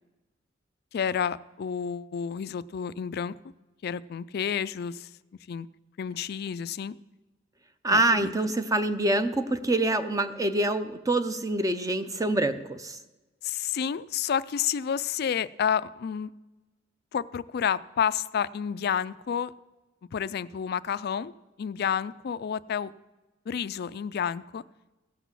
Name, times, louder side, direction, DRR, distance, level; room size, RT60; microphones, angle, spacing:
voice 1, 0.9-3.4 3.8-5.1 5.5-5.7 6.0-7.0 7.9-8.3 13.4-16.3 17.1-19.5 20.1-21.3 21.6-22.9 23.5-24.6, left 8 dB, 55° left, 17 dB, 0.4 m, -30 dB
voice 2, 7.8-13.0, right 2 dB, 20° right, 10 dB, 0.6 m, -26 dB
16.0 x 6.1 x 7.2 m, 1.1 s
head